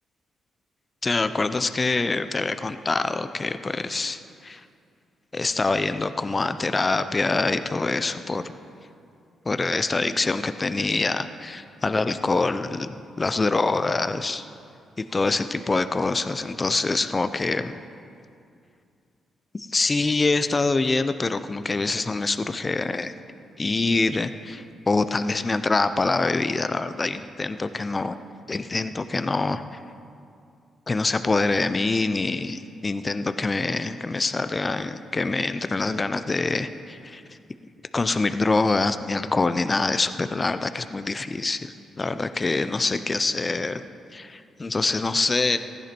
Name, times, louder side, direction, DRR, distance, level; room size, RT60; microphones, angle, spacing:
voice 1, 1.0-4.6 5.3-8.4 9.5-14.4 15.0-17.8 19.5-23.1 23.6-28.2 28.5-29.8 30.9-37.2 37.9-45.6, left 3 dB, 30° left, 11 dB, 0.6 m, -25 dB
15.5 x 11.0 x 4.5 m, 2.4 s
cardioid pair, 65°, 0 cm